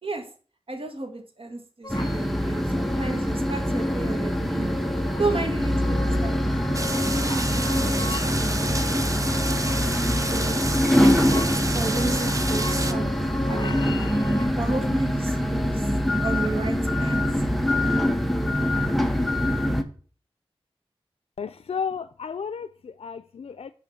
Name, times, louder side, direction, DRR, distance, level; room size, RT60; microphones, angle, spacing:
voice 1, 0.7-4.8 5.2-9.6 10.0-10.8 11.2-13.1 13.5-14.1 14.5-15.9 16.2-17.2, right 2 dB, 65° right, 1.8 m, -33 dB
sound 1, 1.8-14.5, left 3 dB, 45° left, 0.8 m, -38 dB
sound 2, 1.9-19.8, equal, ahead, 0.9 m, -24 dB
sound 3, 6.7-12.9, right 2 dB, 35° right, 0.8 m, -30 dB
voice 2, 21.4-23.7, left 6 dB, 90° left, 0.4 m, -33 dB
6.8 x 5.0 x 7.1 m
wide cardioid pair, 75°, 10 cm